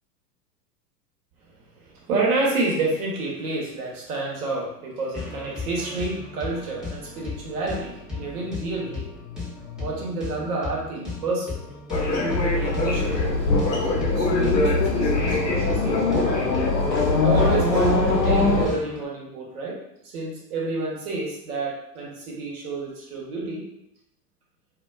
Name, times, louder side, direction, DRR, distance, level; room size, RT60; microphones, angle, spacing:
voice 1, 1.8-9.1 9.8-11.6 12.2-16.3 17.2-23.7, right 3 dB, 60° right, -3 dB, 1.0 m, -29 dB
sound 1, 5.1-19.0, left 3 dB, ahead, 0.6 m, -36 dB
sound 2, 11.9-18.7, left 2 dB, 85° left, 0.7 m, -21 dB
2.4 x 2.3 x 2.3 m, 0.78 s
figure-of-eight pair, 90°, 50 cm